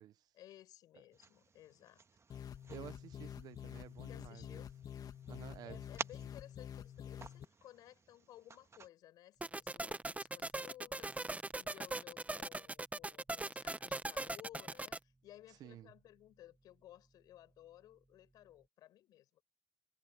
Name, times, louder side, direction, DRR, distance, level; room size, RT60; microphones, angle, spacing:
voice 1, 0.3-2.0 4.1-4.7 5.2-5.3 5.6-19.4, left 13 dB, 90° left, 6.2 m, -58 dB
sound 1, 1.1-8.9, right 4 dB, 45° right, 1.7 m, -52 dB
sound 2, 2.3-7.4, left 9 dB, 70° left, 1.6 m, -48 dB
voice 2, 2.7-4.7 5.3-5.8 15.6-15.9, right 12 dB, 85° right, 0.7 m, -52 dB
sound 3, 9.4-15.0, right 2 dB, 20° right, 0.9 m, -40 dB
supercardioid pair, 50°, 7 cm